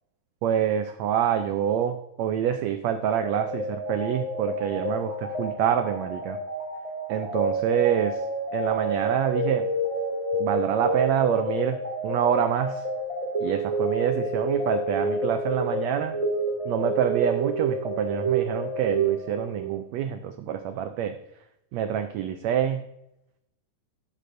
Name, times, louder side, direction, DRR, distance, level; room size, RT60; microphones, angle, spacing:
voice 1, 0.4-6.4 7.1-8.2 8.5-9.6 10.4-11.8 12.0-12.8 13.4-16.2 16.7-21.1 21.7-22.8, right 9 dB, 90° right, 8 dB, 1.5 m, -26 dB
sound 1, 3.2-19.8, right 2 dB, 10° right, 1.8 m, -29 dB
12.0 x 12.0 x 2.6 m, 0.84 s
omnidirectional pair, 3.9 m